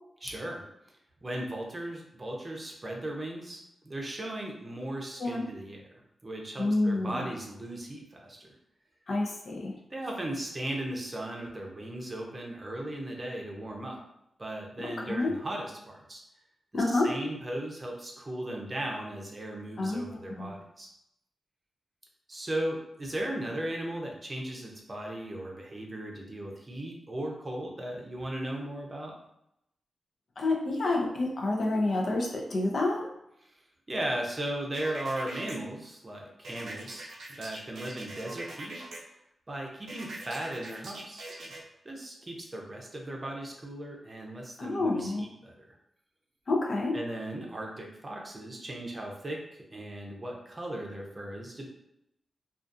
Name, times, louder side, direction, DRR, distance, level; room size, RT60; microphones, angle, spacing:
voice 1, 0.2-0.6 1.2-5.8 6.2-8.5 9.9-14.0 14.4-16.2 16.7-20.9 22.3-29.1 33.4-33.5 33.9-37.1 37.4-38.8 39.5-41.3 41.8-45.7 46.9-51.7, right 1 dB, 30° right, 0 dB, 0.6 m, -37 dB
voice 2, 6.6-7.3 9.1-9.7 14.8-15.3 16.7-17.1 19.8-20.0 20.4-20.5 30.4-33.1 44.6-45.3 46.5-47.0, left 2 dB, 60° left, 0 dB, 0.5 m, -28 dB
sound 1, 34.7-35.6 36.4-39.0 39.9-41.6, right 2 dB, 80° right, 0.5 m, -42 dB
2.4 x 2.3 x 2.6 m, 0.79 s
cardioid pair, 65°, 0 cm